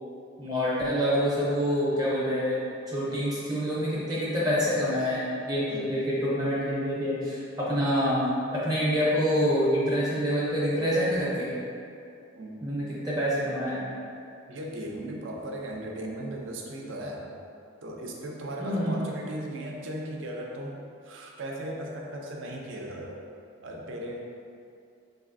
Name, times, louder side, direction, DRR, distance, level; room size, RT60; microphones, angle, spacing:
voice 1, 0.4-2.6 2.9-8.2 8.5-11.6 12.6-13.9 18.6-19.0, equal, 20° right, -7 dB, 0.6 m, -26 dB
voice 2, 14.5-17.2 17.8-23.2 23.6-24.2, right 1 dB, 70° right, 0 dB, 0.4 m, -37 dB
3.9 x 2.7 x 2.5 m, 2.4 s
head